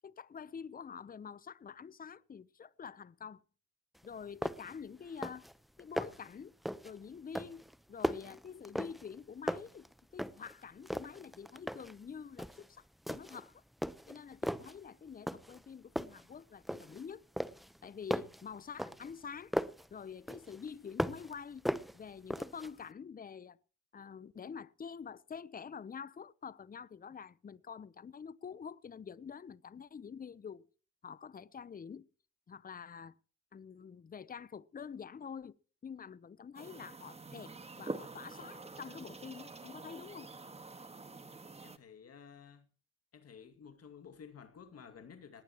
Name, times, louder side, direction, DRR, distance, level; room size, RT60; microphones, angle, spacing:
voice 1, 0.0-3.4 4.0-5.5 5.8-6.5 6.8-7.6 7.9-9.9 10.1-13.6 14.1-17.2 17.8-19.5 19.9-21.7 21.9-23.6 23.9-30.7 31.0-32.1 32.5-33.1 33.5-35.6 35.8-40.3, left 6 dB, 30° left, 0.8 m, -47 dB
sound 1, 4.0-4.1 4.4-4.8 5.1-5.5 5.8-6.3 6.7-7.0 7.3-9.2 9.5-10.5 10.9-12.0 12.4-12.7 13.1-13.5 13.8-14.8 15.3-15.7 16.0-17.0 17.4-19.9 20.3-21.3 21.7-22.7, equal, ahead, 0.9 m, -38 dB
sound 2, 36.6-41.8, right 3 dB, 20° right, 1.6 m, -47 dB
voice 2, 41.6-42.7 43.1-45.4, left 7 dB, 55° left, 2.4 m, -53 dB
19.0 x 18.5 x 3.0 m
cardioid pair, 90°, 30 cm